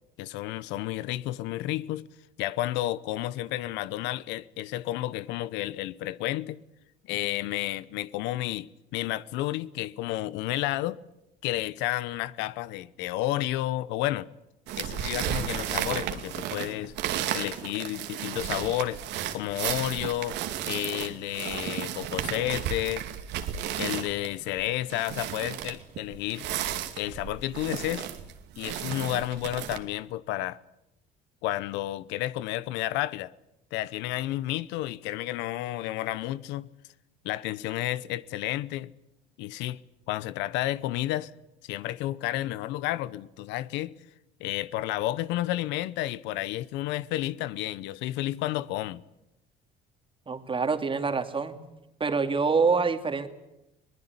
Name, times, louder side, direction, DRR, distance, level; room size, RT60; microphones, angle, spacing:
voice 1, 0.2-2.1 2.4-6.6 7.1-11.0 11.4-14.3 14.8-16.9 17.3-19.0 19.3-23.0 23.8-26.5 27.0-28.1 28.6-30.6 31.4-33.3 33.7-36.7 37.2-38.9 39.4-39.8 40.1-41.3 41.6-43.9 44.4-49.0, left 15 dB, 85° left, 0.9 m, -31 dB
sound 1, 14.7-29.8, right 10 dB, 75° right, 2.5 m, -33 dB
voice 2, 50.3-51.6 52.0-53.3, right 4 dB, 30° right, 2.6 m, -26 dB
22.0 x 19.5 x 9.8 m
supercardioid pair, 90°, 18 cm